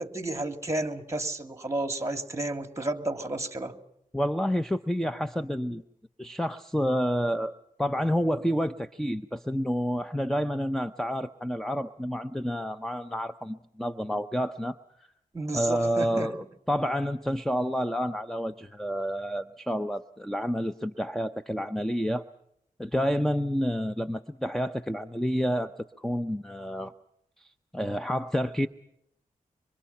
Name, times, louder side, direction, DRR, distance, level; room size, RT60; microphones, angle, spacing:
voice 1, 0.0-3.8 15.3-16.3, right 2 dB, 20° right, 8 dB, 2.8 m, -32 dB
voice 2, 4.1-5.8 6.2-7.5 7.8-14.8 15.5-22.2 22.8-26.9 27.4-28.7, equal, 5° left, 10 dB, 0.9 m, -29 dB
26.5 x 25.0 x 5.8 m, 0.76 s
cardioid pair, 65°, 14 cm